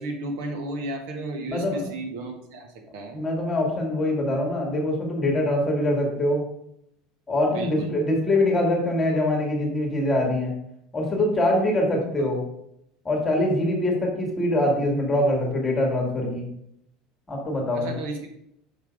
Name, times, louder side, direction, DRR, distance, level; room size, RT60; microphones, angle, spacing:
voice 1, 0.0-3.2 7.5-8.0 12.2-12.3 17.7-18.3, right 2 dB, 65° right, 3 dB, 1.5 m, -33 dB
voice 2, 1.5-1.8 3.1-6.4 7.3-10.5 10.9-12.4 13.0-16.4 17.3-17.9, left 1 dB, 10° left, 0 dB, 1.6 m, -23 dB
5.8 x 5.3 x 5.1 m, 0.75 s
cardioid pair, 180°, 0 cm